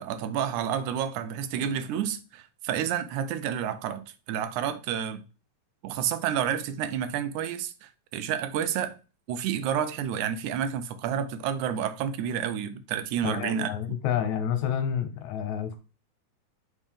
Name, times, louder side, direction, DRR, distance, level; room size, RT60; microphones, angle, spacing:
voice 1, 0.0-5.2 5.8-8.9 9.3-14.0, right 9 dB, 85° right, 2.1 m, -30 dB
voice 2, 13.2-15.8, left 9 dB, 75° left, 2.2 m, -29 dB
5.3 x 5.0 x 3.6 m
omnidirectional pair, 3.4 m